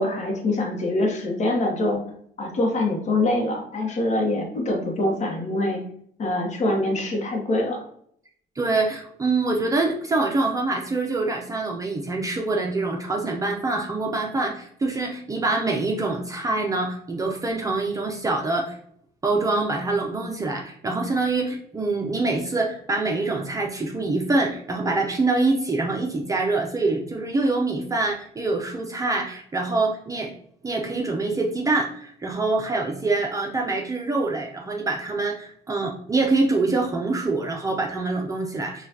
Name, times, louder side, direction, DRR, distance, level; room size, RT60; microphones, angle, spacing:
voice 1, 0.0-2.0 2.4-5.8 6.2-7.8, left 2 dB, 45° left, 1 dB, 1.0 m, -24 dB
voice 2, 8.6-18.8 19.2-30.3 30.6-38.9, right 3 dB, 20° right, 0 dB, 0.6 m, -25 dB
5.4 x 2.4 x 2.7 m, 0.66 s
cardioid pair, 110°, 17 cm